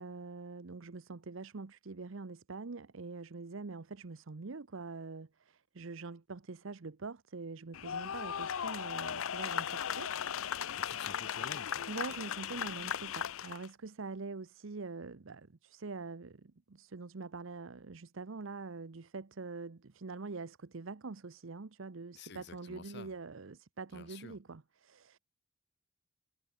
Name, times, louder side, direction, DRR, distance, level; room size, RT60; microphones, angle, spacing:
voice 1, 0.0-10.2 11.9-25.2, right 4 dB, 65° right, 0.7 m, -44 dB
sound 1, 7.7-13.7, left 8 dB, 75° left, 0.6 m, -37 dB
voice 2, 10.8-11.9 22.1-23.1 23.9-24.4, left 4 dB, 50° left, 1.2 m, -50 dB
head